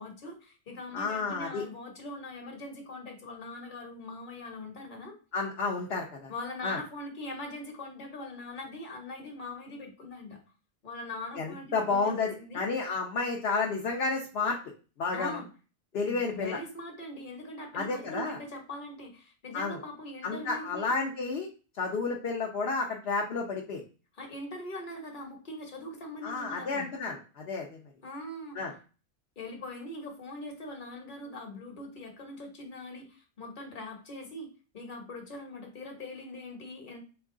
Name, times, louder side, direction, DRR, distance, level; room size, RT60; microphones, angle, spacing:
voice 1, 0.0-5.1 6.3-10.4 10.8-12.7 15.1-15.5 15.9-20.9 24.1-26.9 28.0-28.6 29.4-37.0, left 2 dB, 45° left, 2 dB, 1.2 m, -42 dB
voice 2, 0.9-1.6 5.3-6.3 6.6-6.8 11.4-14.6 15.0-15.4 15.9-16.6 17.7-18.4 19.5-19.8 20.2-21.5 21.8-23.8 26.2-27.8 28.6-28.7, left 4 dB, 60° left, 0 dB, 0.9 m, -31 dB
3.5 x 3.1 x 3.7 m, 0.35 s
omnidirectional pair, 1.2 m